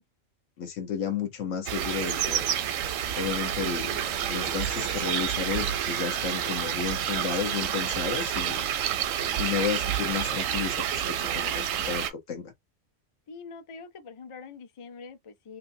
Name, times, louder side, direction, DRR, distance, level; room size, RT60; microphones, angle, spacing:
voice 1, 0.6-2.4 3.2-4.0 4.3-8.7 9.3-12.5, left 7 dB, 75° left, 1.3 m, -32 dB
sound 1, 1.7-12.1, right 10 dB, 90° right, 1.0 m, -29 dB
voice 2, 13.3-15.6, left 5 dB, 45° left, 0.4 m, -44 dB
3.1 x 2.6 x 2.6 m
omnidirectional pair, 1.3 m